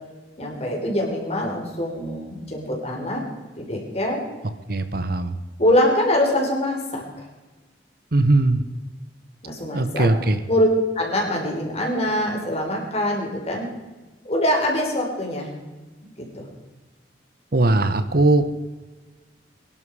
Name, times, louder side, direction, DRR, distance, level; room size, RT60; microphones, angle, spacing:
voice 1, 0.4-3.2 3.6-4.2 5.6-7.3 9.4-10.1 10.5-10.7 10.9-13.7 14.2-15.5 16.2-16.5, left 1 dB, 35° left, 0 dB, 4.2 m, -23 dB
voice 2, 4.7-5.3 8.1-8.6 9.7-10.4 17.5-18.5, right 2 dB, 55° right, 10 dB, 1.0 m, -19 dB
23.0 x 11.5 x 4.9 m, 1.2 s
head